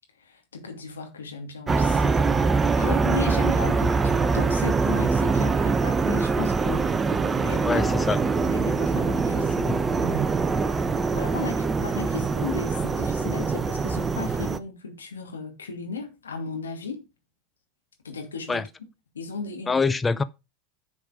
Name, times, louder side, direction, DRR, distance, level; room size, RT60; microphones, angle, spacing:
voice 1, 0.2-2.4 2.8-10.4 11.1-17.1 18.0-18.7 19.1-19.8, left 5 dB, 85° left, 2.7 m, -36 dB
sound 1, 1.7-14.6, right 4 dB, 20° right, 0.8 m, -23 dB
voice 2, 7.6-8.2 18.5-18.6 19.7-20.2, left 4 dB, 20° left, 0.5 m, -24 dB
10.0 x 5.3 x 5.1 m
hypercardioid pair, 85°, 0 cm